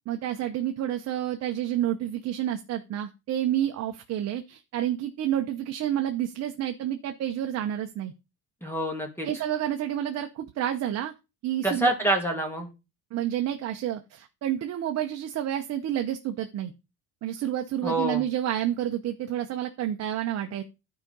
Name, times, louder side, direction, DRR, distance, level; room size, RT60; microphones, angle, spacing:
voice 1, 0.1-8.1 9.2-11.1 11.4-11.9 13.1-16.7 17.2-20.6, right 11 dB, 40° right, 5 dB, 0.9 m, -29 dB
voice 2, 8.6-9.3 11.6-12.7 17.8-18.2, right 1 dB, 5° left, 3 dB, 2.2 m, -26 dB
11.0 x 4.9 x 5.3 m, 0.27 s
cardioid pair, 140°, 38 cm